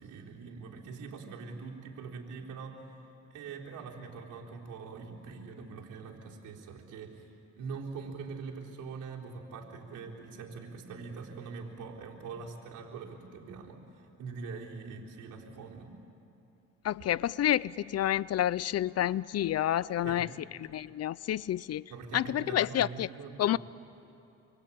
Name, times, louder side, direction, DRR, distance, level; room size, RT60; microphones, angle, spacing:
voice 1, 0.0-15.9 20.0-20.4 21.9-23.6, right 5 dB, 85° right, -2 dB, 3.9 m, -43 dB
voice 2, 16.8-20.3 20.7-21.8 22.1-23.1 23.4-23.6, left 12 dB, 55° left, 20 dB, 0.6 m, -29 dB
28.0 x 23.5 x 8.7 m, 2.8 s
cardioid pair, 90°, 30 cm